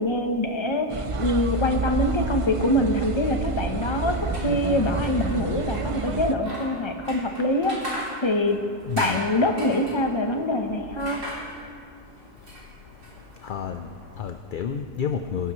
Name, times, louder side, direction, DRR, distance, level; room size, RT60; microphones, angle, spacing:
voice 1, 0.0-4.2 4.4-8.6 9.0-11.2, left 1 dB, 25° left, 4 dB, 0.9 m, -24 dB
sound 1, 0.9-6.4, right 4 dB, 40° right, 0.5 m, -29 dB
sound 2, 4.1-14.2, equal, 75° right, 3.8 m, -39 dB
voice 2, 8.9-9.2 13.4-15.5, left 7 dB, 55° left, 7 dB, 0.6 m, -30 dB
23.5 x 11.5 x 3.1 m, 2.2 s
omnidirectional pair, 1.3 m